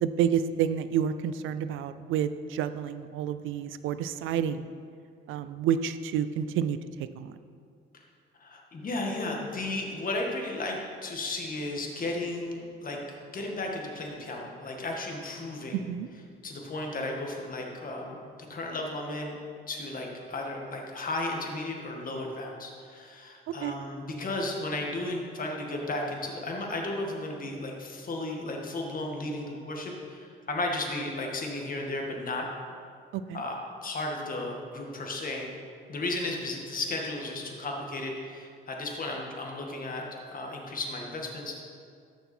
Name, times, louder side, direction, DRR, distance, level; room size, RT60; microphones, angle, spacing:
voice 1, 0.0-4.7 5.3-6.8 7.2-7.3 15.7-16.1 23.5-23.7 33.1-33.4, right 9 dB, 85° right, 12 dB, 0.5 m, -29 dB
voice 2, 8.4-13.0 13.3-15.8 16.4-19.4 19.7-32.5 33.3-35.5 35.9-40.0 40.3-41.6, left 2 dB, 45° left, 0 dB, 1.8 m, -34 dB
13.5 x 6.0 x 4.4 m, 2.2 s
cardioid pair, 90°, 20 cm